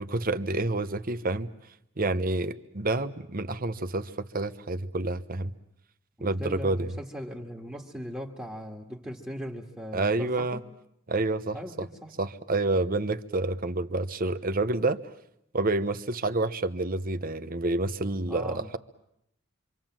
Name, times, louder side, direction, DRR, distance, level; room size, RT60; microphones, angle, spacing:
voice 1, 0.0-1.5 2.0-5.5 6.2-7.0 9.9-10.6 11.1-11.9 12.2-15.0 15.5-18.8, right 2 dB, 45° right, 11 dB, 1.1 m, -28 dB
voice 2, 6.2-10.6 11.5-12.1 18.3-18.8, equal, 10° right, -2 dB, 2.0 m, -39 dB
26.0 x 26.0 x 7.6 m, 0.78 s
head